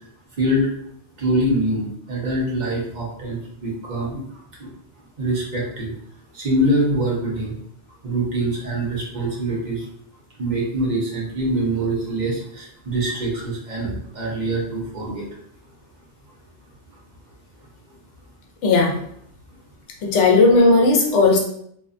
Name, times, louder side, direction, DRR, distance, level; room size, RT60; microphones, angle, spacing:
voice 1, 1.2-4.2 5.2-5.9 6.3-7.5 8.0-9.8 10.4-15.2, right 1 dB, 50° right, -3 dB, 0.7 m, -24 dB
voice 2, 18.6-19.0 20.0-21.4, left 3 dB, 80° left, 1 dB, 0.9 m, -15 dB
2.6 x 2.2 x 2.4 m, 0.67 s
omnidirectional pair, 1.2 m